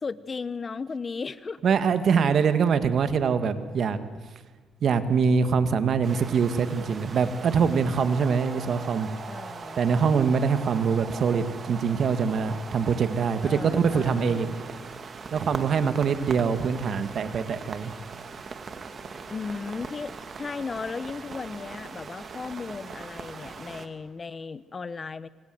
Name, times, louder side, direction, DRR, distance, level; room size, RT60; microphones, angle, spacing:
voice 1, 0.0-1.6 9.3-9.8 13.4-14.6 19.3-25.3, left 4 dB, 35° left, 16 dB, 1.0 m, -36 dB
voice 2, 1.6-4.0 4.8-9.1 9.8-14.8 15.3-17.9, right 6 dB, 60° right, 10 dB, 2.0 m, -24 dB
sound 1, 6.0-23.9, right 5 dB, 45° right, 2.5 m, -40 dB
26.5 x 25.5 x 7.9 m, 1.4 s
cardioid pair, 90°, 0 cm